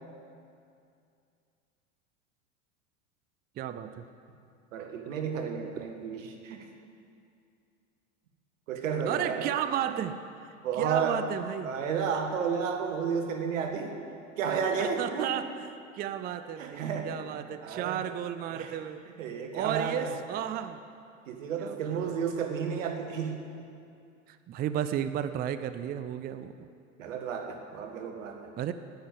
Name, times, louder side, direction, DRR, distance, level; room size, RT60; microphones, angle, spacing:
voice 1, 3.6-4.0 9.1-11.7 14.7-15.7 15.9-19.0 19.5-20.8 21.6-22.5 24.3-26.7 28.6-28.7, right 10 dB, 25° right, 11 dB, 0.4 m, -33 dB
voice 2, 4.7-6.7 8.7-9.5 10.6-11.2 11.6-13.9 14.4-15.4 16.6-18.0 18.5-18.7 19.2-20.1 21.3-23.4 27.0-28.4, right 6 dB, 75° right, 4 dB, 1.8 m, -32 dB
10.0 x 9.3 x 9.0 m, 2.5 s
hypercardioid pair, 95°, 38 cm